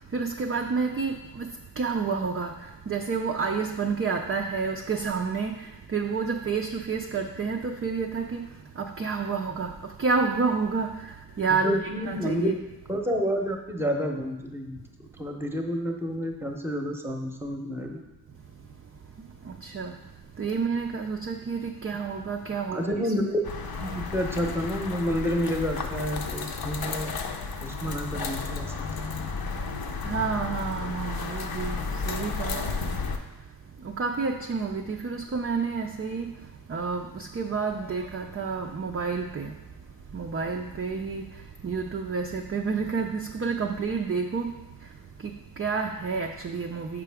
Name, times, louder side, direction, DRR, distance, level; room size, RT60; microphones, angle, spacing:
voice 1, 0.0-11.8 12.1-12.6 19.2-19.9 20.4-22.9 30.0-33.0 33.8-39.5 40.1-44.9 45.2-47.0, right 5 dB, 30° right, 2 dB, 0.4 m, -30 dB
voice 2, 11.6-12.6 12.9-14.9 15.2-18.0 22.7-23.4 23.8-27.1 27.6-29.0, equal, 5° right, 3 dB, 0.8 m, -29 dB
sound 1, 23.4-33.2, left 4 dB, 55° left, 0.7 m, -33 dB
5.9 x 4.7 x 3.5 m, 1.0 s
cardioid pair, 55°, 45 cm